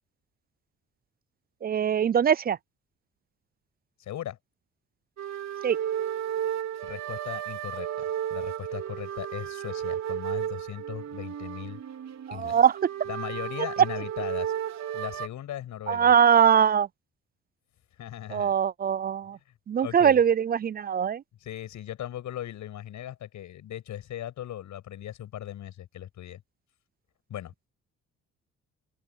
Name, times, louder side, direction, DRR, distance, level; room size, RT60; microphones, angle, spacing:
voice 1, 1.6-2.6 5.6-5.8 12.3-12.8 15.9-16.9 18.3-19.4 19.7-21.2, right 8 dB, 30° right, 0.4 m, -22 dB
voice 2, 4.0-4.4 6.8-8.0 8.3-11.8 12.3-12.6 13.1-14.5 14.9-16.1 18.0-18.5 19.7-20.2 21.4-26.4 27.3-27.7, left 11 dB, 75° left, 6.4 m, -38 dB
sound 1, 5.2-15.3, right 10 dB, 65° right, 4.6 m, -33 dB
open air
cardioid pair, 90°, 30 cm